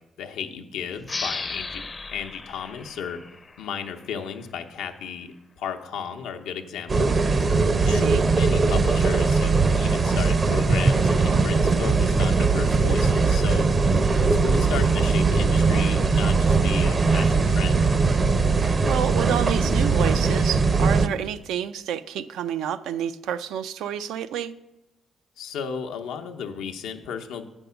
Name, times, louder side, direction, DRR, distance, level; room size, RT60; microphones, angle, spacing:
voice 1, 0.2-1.8 2.1-3.2 3.6-7.2 7.8-13.7 14.2-17.8 25.4-27.5, left 7 dB, 90° left, 5 dB, 0.8 m, -34 dB
sound 1, 1.0-4.3, left 3 dB, 25° left, 0.5 m, -36 dB
sound 2, 6.9-21.1, right 4 dB, 35° right, 0.6 m, -20 dB
voice 2, 7.8-8.2 18.6-24.5, right 9 dB, 85° right, 12 dB, 0.4 m, -29 dB
8.4 x 5.3 x 6.9 m, 0.94 s
cardioid pair, 90°, 0 cm